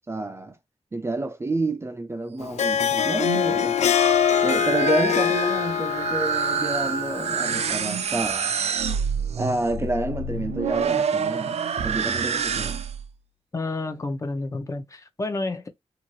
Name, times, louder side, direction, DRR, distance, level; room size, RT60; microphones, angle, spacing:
voice 1, 0.1-0.6 0.9-3.9 4.4-8.5 9.4-12.8, right 2 dB, 25° right, 0.4 m, -29 dB
Harp, 2.4-7.9, left 9 dB, 85° left, 0.4 m, -24 dB
sound 1, 3.1-13.1, right 6 dB, 70° right, 0.5 m, -27 dB
voice 2, 13.5-15.7, left 2 dB, 30° left, 0.8 m, -30 dB
2.7 x 2.6 x 3.0 m
wide cardioid pair, 105°, 11 cm